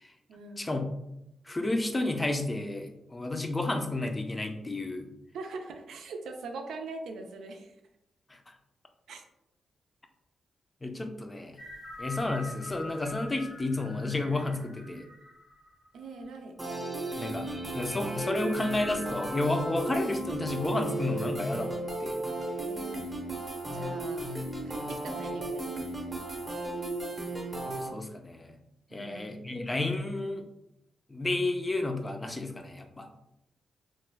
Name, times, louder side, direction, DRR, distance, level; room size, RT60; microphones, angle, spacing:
voice 1, 0.3-0.8 5.3-7.8 9.1-9.2 15.9-16.5 22.6-23.0 23.7-24.2 24.7-25.7 28.9-29.4, right 3 dB, 85° right, 4 dB, 0.4 m, -42 dB
voice 2, 1.5-5.1 10.8-11.6 12.0-15.1 17.2-22.3 27.6-28.5 28.9-30.5 31.1-33.1, left 2 dB, 20° left, 5 dB, 0.4 m, -31 dB
sound 1, 11.6-16.3, left 2 dB, 75° left, 0.9 m, -46 dB
sound 2, 16.6-27.9, right 2 dB, 25° right, 0.7 m, -35 dB
3.0 x 2.1 x 3.3 m, 0.84 s
cardioid pair, 85°, 0 cm